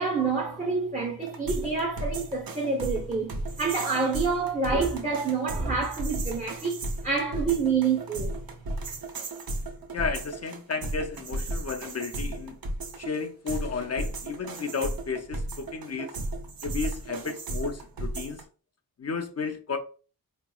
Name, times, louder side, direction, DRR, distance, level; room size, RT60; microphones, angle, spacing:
voice 1, 0.0-8.3, right 4 dB, 20° right, 0.7 m, -27 dB
sound 1, 1.2-18.4, right 2 dB, 65° right, 0.7 m, -35 dB
voice 2, 9.9-12.5 13.0-16.1 16.6-18.4 19.0-19.8, left 5 dB, 45° left, 0.5 m, -33 dB
4.4 x 2.9 x 2.3 m
wide cardioid pair, 140°, 37 cm